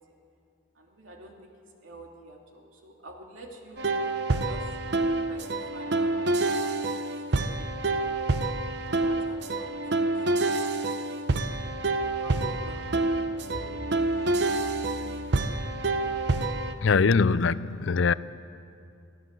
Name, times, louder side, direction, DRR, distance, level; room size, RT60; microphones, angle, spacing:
voice 1, 0.8-1.3 1.8-3.9 4.4-4.7 5.1-5.4 5.7-7.0 7.4-7.7 8.9-10.5 11.1-11.5 12.2-12.9 13.5-13.6, right 1 dB, 75° right, 1 dB, 2.9 m, -46 dB
sound 1, 3.8-16.7, right 2 dB, 55° right, 0.8 m, -27 dB
sound 2, 11.3-16.3, right 1 dB, 5° right, 7.6 m, -47 dB
voice 2, 16.8-18.1, left 5 dB, 65° left, 17 dB, 0.5 m, -22 dB
23.5 x 16.0 x 7.7 m, 2.5 s
head